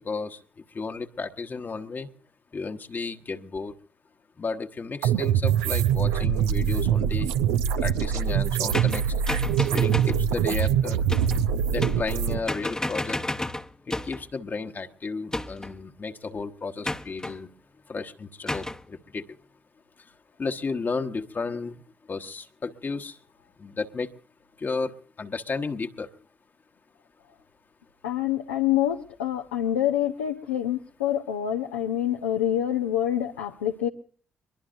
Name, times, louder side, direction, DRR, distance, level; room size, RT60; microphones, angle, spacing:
voice 1, 0.0-0.4 0.7-2.1 2.5-3.7 4.4-7.3 7.8-9.0 9.7-11.0 11.7-13.2 13.9-17.5 17.9-19.2 20.4-21.8 22.1-23.1 23.6-24.1 24.6-24.9 25.2-26.1, left 4 dB, 40° left, 6 dB, 1.2 m, -33 dB
sound 1, 5.0-12.4, right 9 dB, 80° right, 0.6 m, -24 dB
sound 2, 8.7-10.2 11.1-11.4 11.8-12.2 12.5-14.3 15.3-15.8 16.8-17.4 18.5-18.8, left 1 dB, 10° left, 0.9 m, -31 dB
voice 2, 28.0-33.9, left 11 dB, 85° left, 2 dB, 0.7 m, -26 dB
22.5 x 22.0 x 2.6 m, 0.43 s
hypercardioid pair, 45°, 5 cm